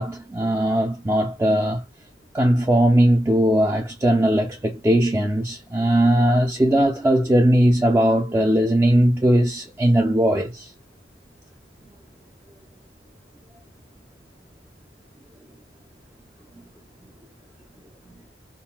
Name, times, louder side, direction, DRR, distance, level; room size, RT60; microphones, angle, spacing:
voice 1, 0.0-1.8 2.3-10.7, right 1 dB, 15° right, 0.3 m, -19 dB
2.2 x 2.1 x 3.6 m
head